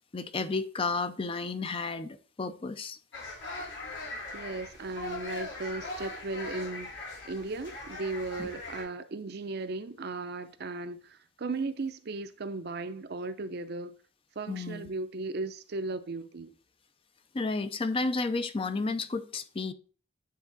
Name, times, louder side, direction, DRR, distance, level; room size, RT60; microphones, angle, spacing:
voice 1, 0.1-3.0 8.4-8.5 14.5-14.9 17.3-19.7, left 3 dB, 30° left, 0.5 m, -32 dB
sound 1, 3.1-8.8, left 2 dB, 70° left, 2.9 m, -40 dB
voice 2, 4.3-13.9 14.4-16.5, right 3 dB, 55° right, 0.6 m, -36 dB
9.4 x 3.5 x 3.9 m
head